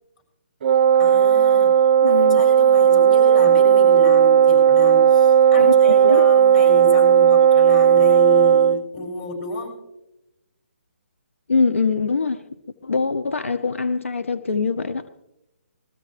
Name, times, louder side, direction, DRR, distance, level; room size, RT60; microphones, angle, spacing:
Wind instrument woodwind instrument, 0.6-8.8, right 8 dB, 45° right, 0.4 m, -14 dB
voice 1, 1.0-9.7, left 3 dB, 30° left, 7.3 m, -32 dB
voice 2, 2.0-2.4 5.5-6.3 11.5-12.4 12.8-15.1, left 4 dB, 80° left, 0.8 m, -23 dB
21.5 x 14.0 x 3.3 m
figure-of-eight pair, 145°, 7 cm